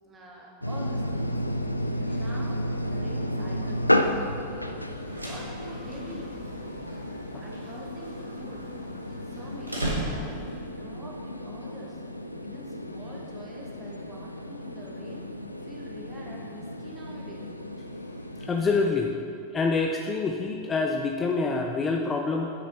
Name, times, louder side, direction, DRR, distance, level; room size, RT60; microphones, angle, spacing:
voice 1, 0.0-1.3 2.0-4.9 5.3-6.4 7.4-8.7 9.1-12.0 12.4-15.3 15.6-17.5, right 1 dB, 20° right, -3 dB, 1.6 m, -45 dB
sound 1, 0.6-18.9, equal, 85° left, 0.3 m, -32 dB
sound 2, 1.1-6.9, left 2 dB, 35° left, 1.5 m, -51 dB
sound 3, 4.9-10.6, right 1 dB, 85° right, 1.3 m, -37 dB
voice 2, 18.4-19.2 19.5-22.5, left 4 dB, 20° left, 2 dB, 0.5 m, -26 dB
8.6 x 6.4 x 4.0 m, 2.5 s
figure-of-eight pair, 90°, 0 cm